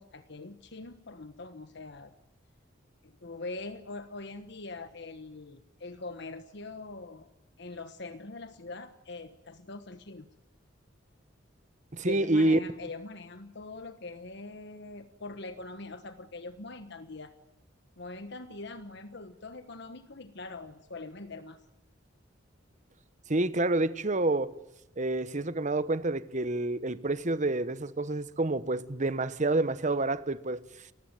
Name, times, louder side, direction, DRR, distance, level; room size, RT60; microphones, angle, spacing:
voice 1, 0.0-2.1 3.0-7.3 7.6-10.3 12.0-17.3 18.0-21.6, left 3 dB, 60° left, 1.3 m, -43 dB
voice 2, 11.9-12.6 23.3-24.5 25.0-30.6, right 2 dB, 40° right, 1.1 m, -28 dB
29.5 x 15.5 x 9.2 m
head